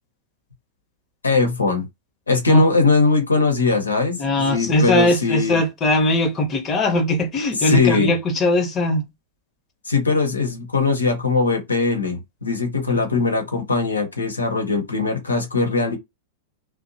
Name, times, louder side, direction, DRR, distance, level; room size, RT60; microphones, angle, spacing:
voice 1, 1.2-1.9 2.3-5.6 7.6-8.1 9.8-16.0, left 3 dB, 85° left, 0.8 m, -20 dB
voice 2, 4.2-9.0 10.2-10.3, left 1 dB, 25° left, 0.8 m, -20 dB
2.6 x 2.0 x 2.5 m
figure-of-eight pair, 100°, 0 cm